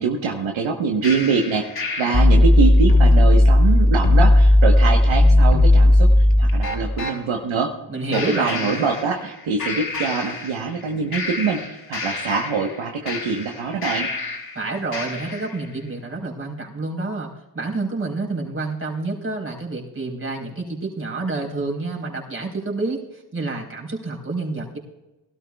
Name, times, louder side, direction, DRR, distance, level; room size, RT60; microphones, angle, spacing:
voice 1, 0.0-7.7 8.1-14.1, right 5 dB, 70° right, 2 dB, 1.4 m, -24 dB
sound 1, 1.0-7.2 8.1-9.3 9.6-10.8 11.1-14.5 14.9-15.6, left 1 dB, 50° left, 4.5 m, -17 dB
voice 2, 7.9-8.8 14.5-24.8, right 3 dB, 25° right, -1 dB, 4.1 m, -28 dB
20.5 x 12.5 x 2.4 m, 1.0 s
cardioid pair, 75°, 48 cm